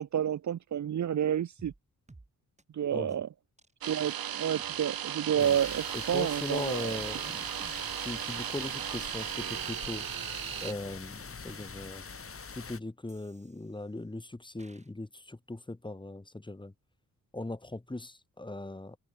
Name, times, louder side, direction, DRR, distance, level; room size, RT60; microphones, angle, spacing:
voice 1, 0.0-1.7 2.7-3.3 3.9-6.9, right 9 dB, 55° right, 0.8 m, -30 dB
sound 1, 1.6-1.8 2.1-2.3 2.6-2.7 3.1-3.2 3.6-3.7 4.1-4.2 4.6-5.2 5.6-5.7 6.1-6.7 7.1-7.2 7.6-10.2 10.6-11.5 12.1-12.2 13.1-14.0 14.6-14.9, right 2 dB, 20° right, 6.9 m, -59 dB
sound 2, 3.8-10.7, right 11 dB, 90° right, 2.0 m, -36 dB
sound 3, 5.4-12.8, left 5 dB, 40° left, 3.0 m, -45 dB
voice 2, 5.9-7.5 8.0-10.1 10.6-12.1 12.5-16.7 17.3-19.0, left 2 dB, 15° left, 2.5 m, -39 dB
cardioid pair, 110°, 35 cm